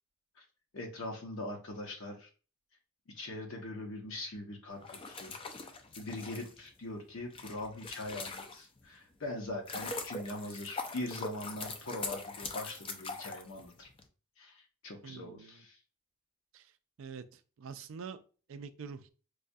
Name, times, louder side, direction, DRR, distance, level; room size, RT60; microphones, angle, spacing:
voice 1, 0.7-2.3 3.1-5.3 6.0-13.9 14.4-15.8, left 1 dB, 60° left, 1 dB, 0.7 m, -42 dB
sound 1, 4.7-8.9 9.3-14.0, left 3 dB, 25° left, 0.3 m, -42 dB
voice 2, 15.0-15.6 16.5-16.7 17.0-18.2 18.5-19.1, right 6 dB, 60° right, 11 dB, 0.3 m, -46 dB
4.7 x 2.2 x 2.6 m, 0.36 s
head